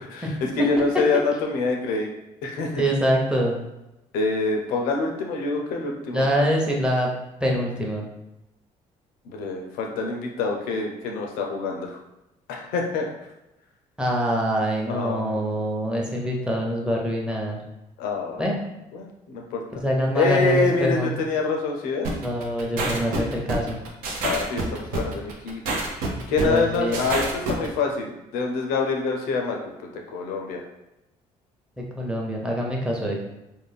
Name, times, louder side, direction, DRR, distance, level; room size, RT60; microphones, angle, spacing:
voice 1, 0.0-2.1 2.4-2.8 4.1-6.3 9.2-12.0 12.5-13.1 14.9-15.7 18.0-18.6 18.9-19.8 20.1-22.1 24.2-25.6 25.9-30.6, left 3 dB, 85° left, 1 dB, 0.5 m, -26 dB
voice 2, 2.8-3.7 6.1-7.1 7.4-8.1 14.0-17.6 18.4-18.6 19.8-21.1 22.2-23.8 26.4-26.9 32.0-33.2, equal, 5° right, -2 dB, 0.8 m, -24 dB
sound 1, 22.0-27.7, right 2 dB, 80° right, 0.5 m, -28 dB
2.5 x 2.1 x 3.3 m, 0.95 s
supercardioid pair, 65°, 15 cm